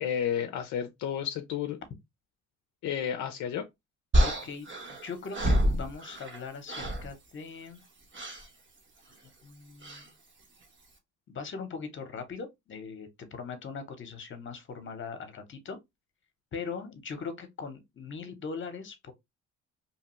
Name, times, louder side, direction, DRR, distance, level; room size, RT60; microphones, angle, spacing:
voice 1, 0.0-1.8 2.8-3.7, left 9 dB, 70° left, 0.5 m, -31 dB
sound 1, 4.1-6.4 6.7-7.1 8.1-8.5 9.8-10.1, equal, 40° right, 1.0 m, -27 dB
voice 2, 4.2-4.7 5.0-7.8 9.4-10.1 11.3-15.8 16.5-19.1, left 5 dB, 40° left, 0.8 m, -40 dB
2.8 x 2.3 x 3.0 m
cardioid pair, 90°, 30 cm